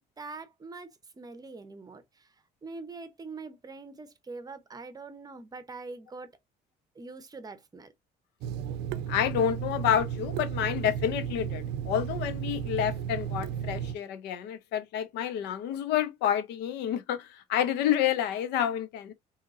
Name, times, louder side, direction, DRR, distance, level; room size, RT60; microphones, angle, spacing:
voice 1, 0.2-2.3 2.6-6.4 6.9-7.9, right 3 dB, 20° right, 0.7 m, -43 dB
Water tap faucet / Sink (filling or washing), 8.4-14.0, right 9 dB, 90° right, 0.5 m, -34 dB
voice 2, 9.1-19.1, left 10 dB, 90° left, 0.6 m, -29 dB
3.7 x 2.8 x 2.4 m
cardioid pair, 110°, 17 cm